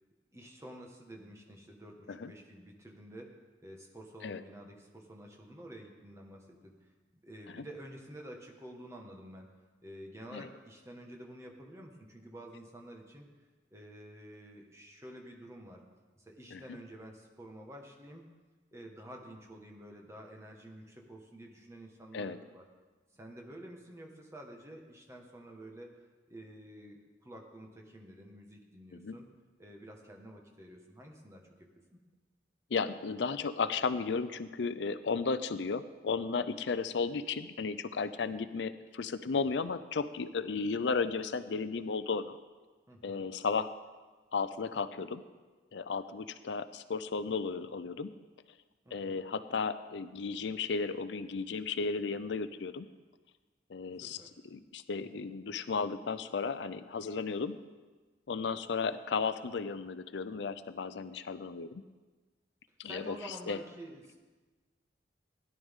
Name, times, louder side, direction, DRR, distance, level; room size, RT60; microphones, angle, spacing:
voice 1, 0.3-6.7 7.2-9.5 9.8-13.3 13.7-15.8 16.2-18.3 18.7-22.6 23.1-29.3 29.6-31.5 31.9-32.0 42.9-43.2 48.8-49.2 54.0-54.4 55.1-55.2 62.8-64.1, right 1 dB, 15° right, 1 dB, 1.5 m, -50 dB
voice 2, 32.7-42.4 43.0-43.7 44.3-45.2 45.7-48.1 48.9-52.9 53.7-54.2 54.5-57.6 58.3-61.8 62.8-63.6, left 4 dB, 80° left, 13 dB, 0.5 m, -34 dB
17.0 x 11.0 x 3.6 m, 1.3 s
head